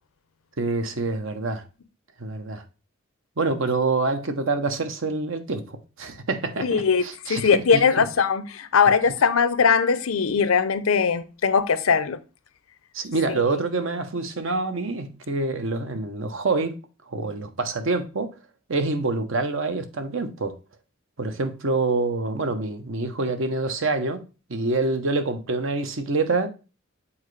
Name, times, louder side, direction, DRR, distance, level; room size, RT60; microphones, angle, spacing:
voice 1, 0.6-1.6 2.2-2.6 3.4-8.0 12.9-16.8 17.1-18.3 18.7-20.6 21.2-24.2 24.5-26.5, right 3 dB, 70° right, 0.8 m, -26 dB
voice 2, 6.6-12.2 13.4-13.5, left 6 dB, 85° left, 0.6 m, -20 dB
7.2 x 4.2 x 3.2 m
head